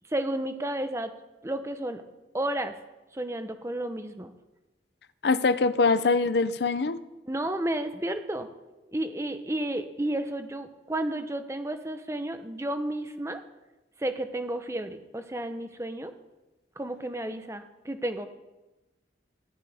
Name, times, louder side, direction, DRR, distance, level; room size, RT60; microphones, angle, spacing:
voice 1, 0.1-1.1 1.4-2.0 2.3-2.8 3.1-4.3 7.3-8.5 8.9-13.4 14.0-16.1 16.8-18.3, right 1 dB, 15° right, 8 dB, 0.8 m, -32 dB
voice 2, 5.2-7.0, left 4 dB, 65° left, 14 dB, 0.5 m, -23 dB
15.5 x 11.5 x 3.5 m, 1.1 s
head